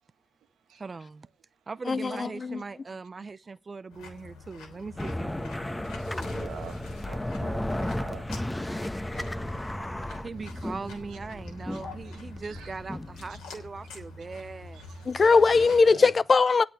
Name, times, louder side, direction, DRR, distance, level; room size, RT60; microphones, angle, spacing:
voice 1, 0.8-1.3 1.7-5.5 10.2-14.8, right 4 dB, 40° right, 0.6 m, -40 dB
voice 2, 1.9-2.6 15.1-16.6, left 4 dB, 40° left, 0.6 m, -20 dB
sound 1, 3.9-15.8, left 3 dB, 90° left, 3.3 m, -46 dB
sound 2, 5.0-13.4, left 1 dB, 10° left, 1.1 m, -34 dB
voice 3, 6.0-8.3 9.2-9.6 10.1-10.3 11.1-11.2 11.7-12.7 13.3-13.9 14.2-14.5 14.7-15.2 15.6-16.1, right 8 dB, 85° right, 1.5 m, -47 dB
8.8 x 8.5 x 9.3 m
supercardioid pair, 55°, 0 cm